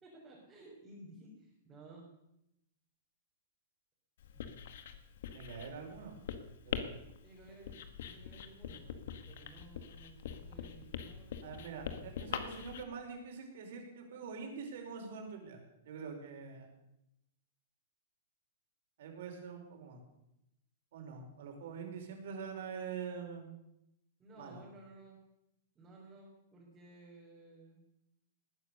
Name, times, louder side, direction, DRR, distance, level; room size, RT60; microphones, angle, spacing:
voice 1, 0.0-2.1 4.3-4.7 7.2-11.4 24.2-25.2 25.7-27.8, right 2 dB, 15° right, -6 dB, 3.9 m, -56 dB
Writing, 4.2-12.8, left 8 dB, 65° left, 1.7 m, -44 dB
voice 2, 5.3-6.2 6.6-6.8 11.4-16.7 19.0-20.0 20.9-23.5 24.4-24.6, right 6 dB, 60° right, 2 dB, 5.0 m, -45 dB
19.5 x 9.9 x 6.9 m, 0.84 s
supercardioid pair, 165°, 0 cm